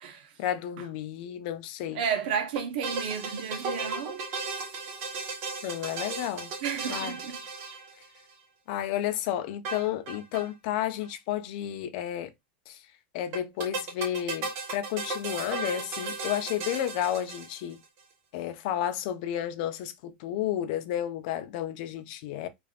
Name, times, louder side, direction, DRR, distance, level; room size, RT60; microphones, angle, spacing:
voice 1, 0.4-2.0 5.6-6.5 6.9-7.1 8.7-12.3 12.7-12.8 13.1-17.8 18.3-22.5, left 11 dB, 55° left, 0.5 m, -32 dB
voice 2, 1.9-4.2 6.6-7.4, right 7 dB, 65° right, 0.9 m, -32 dB
sound 1, 2.5-8.3 9.6-10.5 10.7-10.8 11.0-11.1 13.3-17.8, right 4 dB, 45° right, 1.1 m, -35 dB
3.3 x 2.5 x 2.4 m
supercardioid pair, 145°, 5 cm